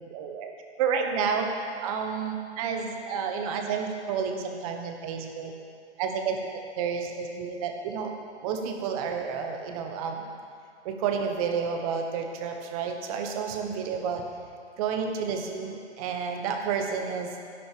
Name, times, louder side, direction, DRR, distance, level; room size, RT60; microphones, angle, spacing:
voice 1, 0.1-0.5 0.8-1.5 1.8-5.5 6.0-6.4 6.8-8.1 8.4-10.3 10.8-14.2 14.8-17.3, right 6 dB, 30° right, 4 dB, 1.2 m, -30 dB
11.5 x 10.5 x 5.1 m, 2.3 s
hypercardioid pair, 145°, 35 cm